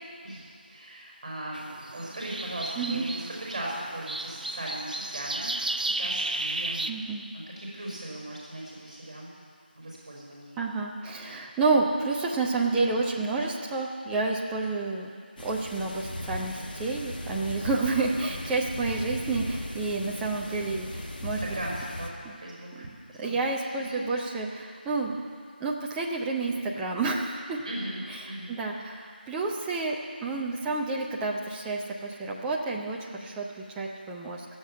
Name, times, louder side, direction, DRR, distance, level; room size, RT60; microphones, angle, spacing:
voice 1, 0.2-9.3 9.7-10.6 21.3-22.9 23.2-23.4 23.6-24.0 27.6-28.5, right 1 dB, 30° right, -4 dB, 5.0 m, -38 dB
sound 1, 1.5-6.9, right 2 dB, 50° right, 0.7 m, -33 dB
voice 2, 6.9-7.2 10.6-15.1 15.4-21.6 22.2-22.4 22.8-22.9 23.2-25.2 25.6-27.6 28.5-34.5, right 3 dB, 5° right, -2 dB, 0.5 m, -29 dB
sound 2, 15.4-22.1, left 1 dB, 60° left, 1.8 m, -37 dB
16.5 x 7.5 x 9.7 m, 2.1 s
figure-of-eight pair, 165°, 6 cm